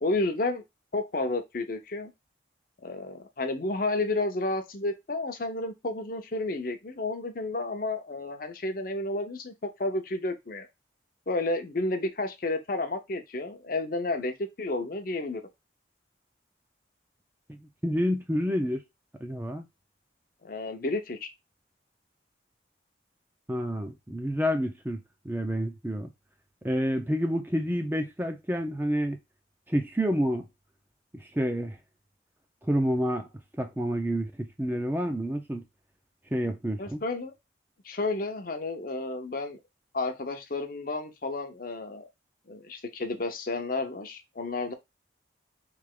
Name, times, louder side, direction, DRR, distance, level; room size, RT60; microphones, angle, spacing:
voice 1, 0.0-0.6 0.9-2.1 2.8-10.7 11.3-15.4 20.4-21.3 36.8-37.3 37.8-39.6 39.9-42.1 42.5-44.7, left 2 dB, 50° left, 0.7 m, -31 dB
voice 2, 17.8-18.8 19.2-19.6 23.5-26.1 26.6-29.2 29.7-30.5 31.1-31.8 32.6-33.3 33.6-35.6 36.3-37.0, equal, 10° right, 0.5 m, -29 dB
3.3 x 2.9 x 3.6 m
head